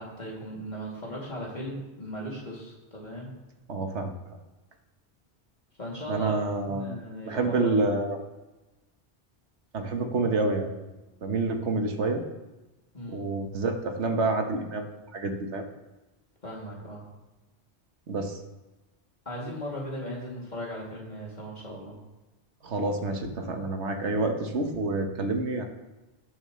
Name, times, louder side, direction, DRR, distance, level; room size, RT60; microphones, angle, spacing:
voice 1, 0.0-3.3 5.8-6.3 6.6-7.7 12.9-13.3 16.4-17.0 19.2-22.0, equal, 40° left, -4 dB, 2.9 m, -37 dB
voice 2, 3.7-4.1 6.1-7.0 7.2-8.2 9.7-10.8 11.2-12.2 13.1-14.9 15.1-15.7 18.1-18.4 22.6-25.6, right 3 dB, 85° right, 5 dB, 1.5 m, -28 dB
17.5 x 7.5 x 3.2 m, 1.1 s
omnidirectional pair, 1.1 m